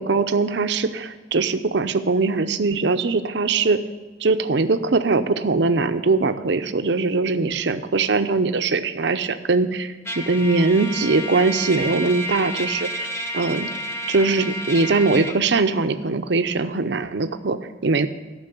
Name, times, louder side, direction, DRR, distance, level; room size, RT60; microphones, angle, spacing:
voice 1, 0.0-3.8 4.2-13.7 14.1-18.1, right 3 dB, 60° right, 10 dB, 0.7 m, -21 dB
Trumpet, 10.1-15.4, equal, 15° left, 0.9 m, -30 dB
13.0 x 6.4 x 8.4 m, 1.3 s
head